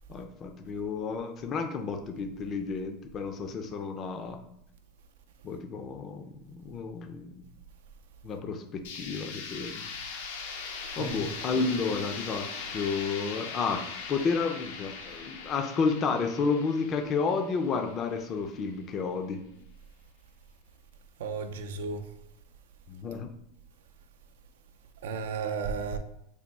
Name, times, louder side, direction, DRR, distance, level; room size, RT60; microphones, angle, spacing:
voice 1, 0.1-4.4 5.4-7.5 8.2-9.9 10.2-10.3 11.0-19.4 22.9-23.3, left 4 dB, 35° left, 0.4 m, -31 dB
sound 1, 8.8-18.6, left 5 dB, 85° left, 0.6 m, -40 dB
voice 2, 21.2-22.1 25.0-26.0, right 5 dB, 90° right, 0.4 m, -33 dB
3.4 x 2.2 x 4.1 m
supercardioid pair, 125°, 0 cm